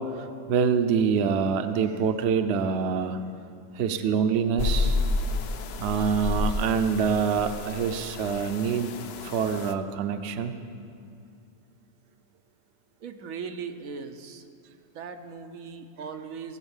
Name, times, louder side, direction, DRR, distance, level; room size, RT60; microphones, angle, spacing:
voice 1, 0.0-3.2 3.7-5.0 5.8-8.9 9.2-10.5, right 6 dB, 60° right, 8 dB, 0.9 m, -25 dB
sound 1, 4.6-9.7, left 3 dB, 60° left, 0.8 m, -30 dB
voice 2, 13.0-14.4 14.9-16.6, right 6 dB, 85° right, 6 dB, 1.2 m, -38 dB
18.0 x 7.9 x 7.2 m, 2.5 s
omnidirectional pair, 1.4 m